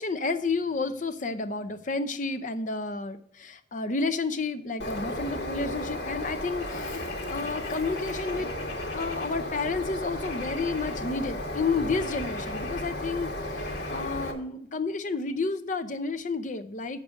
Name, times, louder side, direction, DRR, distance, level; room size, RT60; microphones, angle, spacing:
voice 1, 0.0-8.5 8.9-17.0, left 3 dB, 40° left, 12 dB, 0.6 m, -31 dB
Bird, 4.8-14.3, left 1 dB, 65° left, 1.6 m, -34 dB
8.1 x 6.7 x 6.2 m, 0.67 s
head